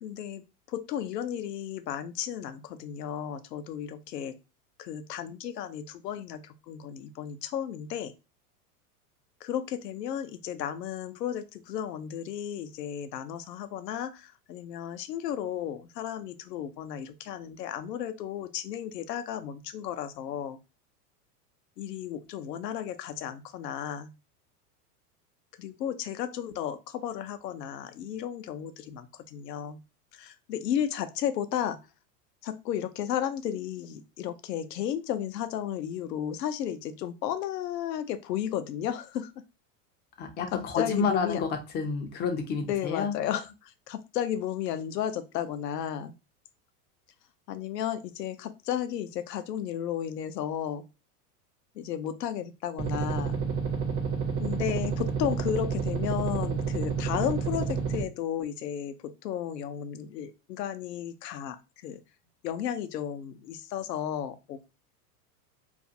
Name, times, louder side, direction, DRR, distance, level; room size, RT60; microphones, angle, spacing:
voice 1, 0.0-4.4 4.8-8.1 9.4-20.6 21.8-24.1 25.6-29.8 30.1-31.8 32.4-39.4 40.5-41.4 42.6-46.1 47.5-50.8 51.7-53.4 54.4-58.9 59.2-61.6 61.8-62.0 62.4-64.6, left 10 dB, 85° left, 9 dB, 0.5 m, -33 dB
voice 2, 40.2-41.5 41.7-43.1, left 5 dB, 25° left, 5 dB, 0.3 m, -29 dB
sound 1, 52.8-58.0, right 5 dB, 30° right, 0.6 m, -30 dB
2.4 x 2.4 x 2.6 m, 0.28 s
hypercardioid pair, 95°, 47 cm